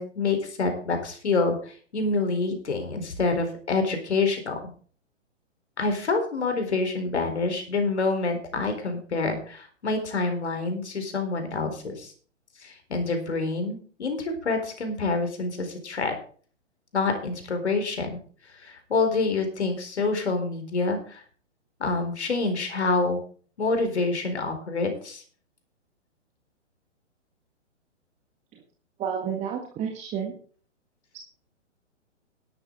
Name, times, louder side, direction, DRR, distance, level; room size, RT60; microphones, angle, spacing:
voice 1, 0.0-4.7 5.8-12.1 12.6-16.1 16.9-18.2 18.5-21.2 21.8-23.2 23.6-25.2, left 3 dB, 65° left, 6 dB, 4.3 m, -27 dB
voice 2, 29.0-30.3 31.1-31.2, right 7 dB, 20° right, 1 dB, 1.8 m, -30 dB
12.0 x 11.5 x 3.9 m, 0.43 s
figure-of-eight pair, 125°, 36 cm